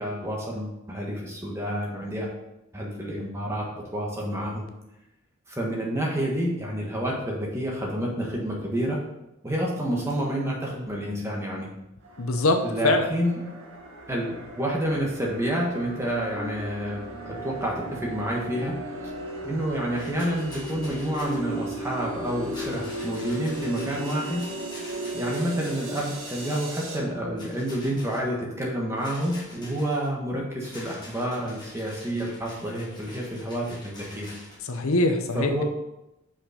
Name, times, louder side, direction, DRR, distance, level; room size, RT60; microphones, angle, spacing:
voice 1, 0.0-2.3 2.7-3.7 3.9-4.6 5.5-9.0 9.4-11.7 12.6-13.4 14.1-17.0 17.2-18.7 19.4-24.4 25.1-34.3 35.3-35.6, right 1 dB, 10° right, -2 dB, 1.4 m, -29 dB
sound 1, 12.0-27.0, right 1 dB, 65° right, 1.6 m, -36 dB
voice 2, 12.2-13.1 34.6-35.6, left 2 dB, 70° left, 6 dB, 0.7 m, -23 dB
Rattle, 19.9-21.4 22.5-26.6 27.4-28.2 29.0-30.1 30.6-34.6, left 1 dB, 20° left, 1.6 m, -46 dB
5.7 x 5.4 x 5.0 m, 0.90 s
head